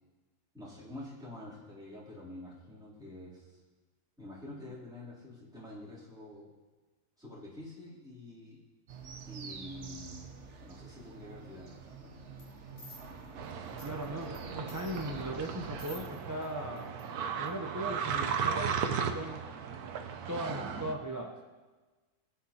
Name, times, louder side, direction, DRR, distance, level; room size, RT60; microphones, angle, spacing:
voice 1, 0.5-3.6 4.2-6.5 7.2-8.6 9.2-10.3 10.6-12.1 13.7-13.9, left 1 dB, ahead, -9 dB, 3.1 m, -47 dB
sound 1, 8.9-16.1, right 4 dB, 55° right, 1.1 m, -48 dB
sound 2, 12.4-12.5 12.8-14.4 14.7-16.5 16.8-17.0 17.5-17.6, left 2 dB, 35° left, 2.1 m, -52 dB
sound 3, 13.4-20.9, right 7 dB, 85° right, 1.3 m, -36 dB
voice 2, 13.8-16.9 17.4-18.8 19.1-19.4 20.3-21.3, right 1 dB, 25° right, 1 dB, 0.4 m, -38 dB
20.0 x 9.3 x 2.9 m, 1.3 s
omnidirectional pair, 1.6 m